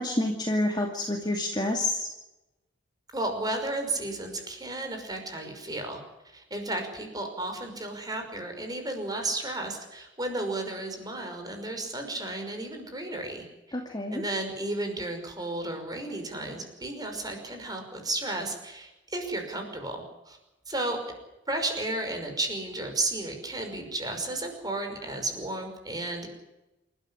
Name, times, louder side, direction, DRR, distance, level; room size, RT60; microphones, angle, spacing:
voice 1, 0.0-2.1 13.7-14.2, left 1 dB, 20° left, 1 dB, 2.5 m, -28 dB
voice 2, 3.1-13.8 14.1-20.4 20.7-21.0 21.5-26.3, right 2 dB, 20° right, 5 dB, 5.7 m, -33 dB
28.0 x 13.0 x 10.0 m, 0.97 s
head